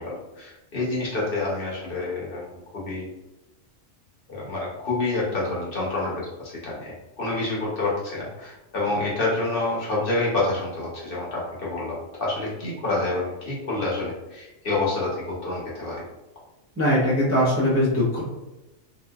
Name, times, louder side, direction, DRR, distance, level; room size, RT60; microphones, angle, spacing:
voice 1, 0.0-2.4 2.7-3.1 4.3-16.0, left 2 dB, 50° left, -5 dB, 0.9 m, -28 dB
voice 2, 16.8-18.2, equal, 15° right, -8 dB, 0.5 m, -21 dB
2.9 x 2.5 x 2.2 m, 1.0 s
omnidirectional pair, 1.3 m